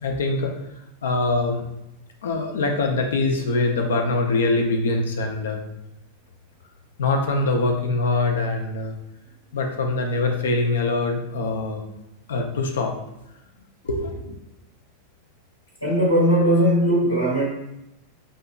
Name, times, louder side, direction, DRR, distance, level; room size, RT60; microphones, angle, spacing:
voice 1, 0.0-0.5 1.0-1.6 2.2-5.6 7.0-8.9 9.5-11.8 12.3-12.9 13.8-14.3, left 3 dB, 65° left, 3 dB, 0.7 m, -23 dB
voice 2, 15.8-17.5, equal, 90° left, -6 dB, 1.4 m, -19 dB
7.4 x 2.8 x 2.3 m, 0.89 s
figure-of-eight pair, 90°, 0 cm